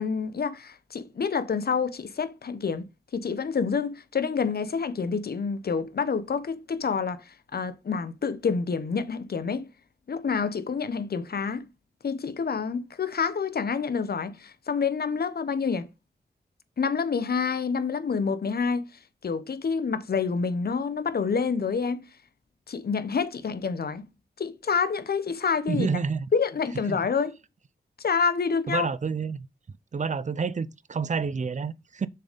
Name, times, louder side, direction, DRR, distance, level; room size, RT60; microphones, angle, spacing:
voice 1, 0.0-2.9 3.1-9.7 10.1-11.7 12.0-15.9 16.8-18.9 19.2-22.0 22.7-24.1 24.4-25.9 26.3-27.3 28.0-28.9, left 5 dB, 60° left, 0.8 m, -28 dB
voice 2, 25.7-26.3 26.9-27.0 28.7-29.5 29.9-32.1, right 5 dB, 45° right, 0.5 m, -29 dB
6.7 x 4.0 x 5.1 m
cardioid pair, 60°, 18 cm